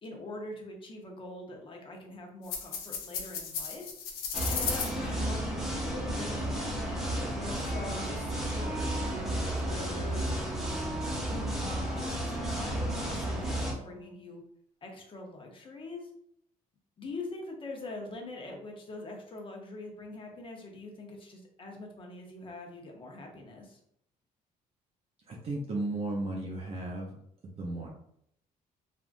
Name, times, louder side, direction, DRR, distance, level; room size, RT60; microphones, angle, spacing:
voice 1, 0.0-3.9 4.5-10.9 11.2-13.5 13.8-14.4 14.8-16.1 17.0-23.8, left 2 dB, 35° left, 1 dB, 0.8 m, -43 dB
sound 1, 2.5-4.9, left 6 dB, 80° left, 0.6 m, -35 dB
sound 2, 4.3-13.7, right 1 dB, 5° right, 0.8 m, -33 dB
Wind instrument woodwind instrument, 6.0-14.3, right 2 dB, 65° right, 1.2 m, -44 dB
voice 2, 25.3-27.2 27.4-27.9, right 2 dB, 40° right, -1 dB, 0.6 m, -35 dB
3.5 x 2.4 x 2.5 m, 0.71 s
cardioid pair, 110°, 15 cm